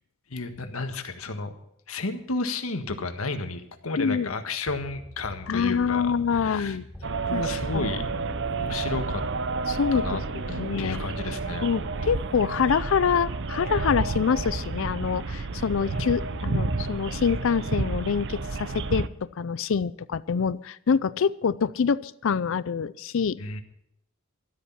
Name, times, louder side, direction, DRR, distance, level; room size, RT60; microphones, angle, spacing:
voice 1, 0.3-1.5 1.9-6.8 7.3-8.0 8.5-9.2 9.9-10.2 10.5-11.7 15.8-16.0 23.4-23.6, left 3 dB, 85° left, 7 dB, 1.6 m, -32 dB
voice 2, 4.0-4.3 5.5-6.9 7.3-7.4 7.7-7.9 9.7-11.0 11.6-19.1 19.4-23.4, left 6 dB, 65° left, 18 dB, 0.4 m, -26 dB
sound 1, 4.7-9.8 13.8-19.0, left 1 dB, 5° right, 5.0 m, -44 dB
sound 2, 7.0-19.1, right 3 dB, 60° right, 0.8 m, -30 dB
13.0 x 13.0 x 5.7 m, 0.77 s
head